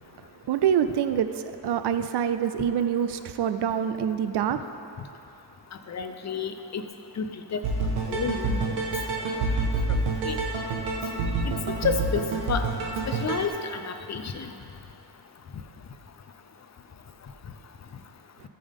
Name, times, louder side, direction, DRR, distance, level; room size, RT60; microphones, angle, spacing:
voice 1, 0.5-1.3 1.6-4.6, right 9 dB, 60° right, 10 dB, 0.6 m, -25 dB
voice 2, 5.9-6.8 7.2-7.3 7.5-7.6 8.1-8.8 9.4-9.5 9.9-10.4 11.5-11.6 11.8-12.2 12.5-12.6 13.1-14.5, left 6 dB, 35° left, 7 dB, 0.6 m, -30 dB
sound 1, 7.6-13.5, right 3 dB, 90° right, 1.5 m, -27 dB
14.0 x 5.4 x 3.6 m, 2.8 s
cardioid pair, 100°, 47 cm